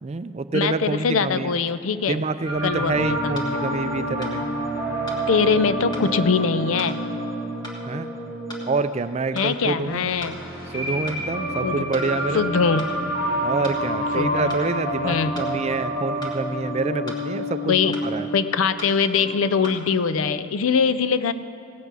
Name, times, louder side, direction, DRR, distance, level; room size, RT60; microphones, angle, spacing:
voice 1, 0.0-1.5 2.1-4.5 7.9-8.1 8.7-10.1 10.7-12.5 13.4-18.3, right 3 dB, 30° right, 12 dB, 0.3 m, -27 dB
voice 2, 0.5-2.2 2.6-3.3 5.3-7.0 9.3-10.4 11.6-11.8 12.3-12.9 14.1-14.5 15.0-15.5 17.7-18.0 18.3-21.3, left 5 dB, 85° left, 13 dB, 0.5 m, -22 dB
sound 1, 2.4-19.7, equal, 50° left, 2.2 m, -29 dB
sound 2, 2.6-2.7 3.4-3.5 4.2-4.4 5.1-5.2 5.9-6.1 6.8-7.0 7.6-7.8 8.5-8.7 9.4-9.5 10.2-10.4 11.1-11.2 11.9-12.1 12.8-12.9 13.6-13.8 14.5-14.7 15.4-15.5 16.2-16.4 17.1-17.2 17.9-18.1 18.8-19.0 19.6-19.8, equal, 20° left, 1.5 m, -38 dB
Guitar, 11.6-15.2, equal, 65° left, 2.4 m, -49 dB
17.0 x 8.2 x 6.1 m, 2.4 s
head